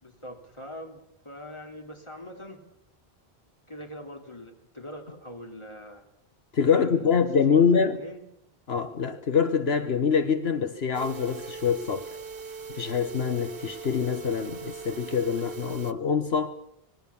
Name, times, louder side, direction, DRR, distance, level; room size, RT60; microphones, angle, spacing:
voice 1, 0.0-2.6 3.7-6.0 6.7-8.2, equal, 30° left, 3.4 m, -42 dB
voice 2, 6.5-8.0 8.7-12.0 12.7-16.6, left 6 dB, 75° left, 1.4 m, -25 dB
sound 1, 10.9-15.9, right 5 dB, 60° right, 1.3 m, -40 dB
26.0 x 19.5 x 7.2 m
omnidirectional pair, 1.1 m